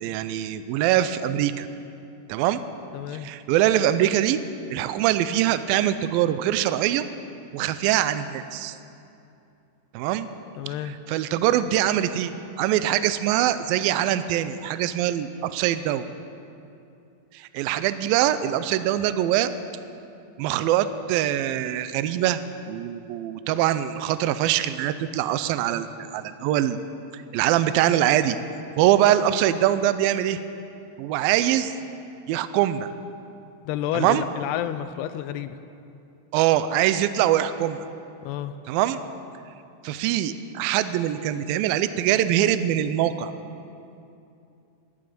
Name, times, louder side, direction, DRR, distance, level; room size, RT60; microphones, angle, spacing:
voice 1, 0.0-1.7 2.3-2.6 3.2-4.4 4.7-7.1 7.5-8.8 9.9-10.3 11.1-12.3 12.6-16.0 17.3-19.5 20.4-22.4 22.7-25.9 26.1-26.8 27.3-28.4 28.8-30.4 31.0-31.7 32.3-32.9 33.9-34.2 36.3-37.8 38.7-39.0 39.8-43.3, right 12 dB, 85° right, 12 dB, 2.1 m, -23 dB
voice 2, 2.9-3.3 10.6-11.0 33.7-35.6 38.2-38.6, left 11 dB, 90° left, 11 dB, 2.7 m, -30 dB
12.0 x 12.0 x 9.2 m, 2.6 s
omnidirectional pair, 4.7 m